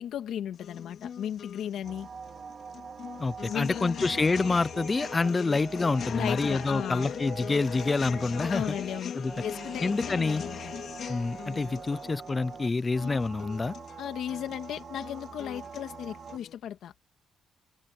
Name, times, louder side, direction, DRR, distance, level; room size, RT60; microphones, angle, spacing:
voice 1, 0.0-2.1 3.5-4.0 6.1-7.1 8.5-9.1 9.4-10.7 14.0-16.9, left 10 dB, 70° left, 2.4 m, -35 dB
sound 1, 0.5-16.5, left 8 dB, 50° left, 3.4 m, -41 dB
sound 2, 1.8-16.4, right 6 dB, 35° right, 0.9 m, -44 dB
voice 2, 3.2-8.8 9.1-9.3 9.8-10.4 11.1-13.7, left 3 dB, 20° left, 0.5 m, -27 dB
cardioid pair, 165°, 0 cm